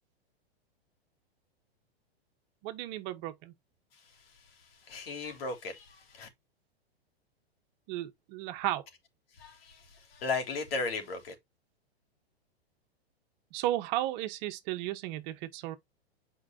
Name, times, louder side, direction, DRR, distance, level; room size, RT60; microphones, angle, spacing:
voice 1, 2.6-3.5 7.9-8.8 13.5-15.8, right 14 dB, 45° right, 1.4 m, -34 dB
voice 2, 4.9-6.3 9.4-11.3, left 4 dB, 65° left, 3.4 m, -36 dB
8.6 x 5.0 x 2.9 m
hypercardioid pair, 115°, 31 cm